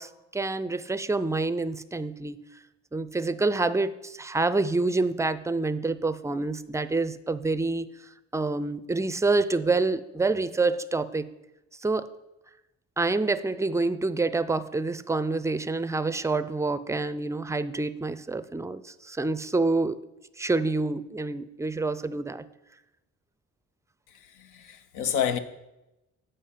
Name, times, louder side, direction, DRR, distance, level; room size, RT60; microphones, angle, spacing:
voice 1, 0.0-2.5 2.9-7.9 8.3-11.3 11.8-12.1 13.0-20.0 20.4-22.4, right 3 dB, 10° right, 0.4 m, -27 dB
voice 2, 24.2-25.4, left 9 dB, 90° left, 0.7 m, -29 dB
8.3 x 5.3 x 5.6 m
cardioid pair, 90°, 30 cm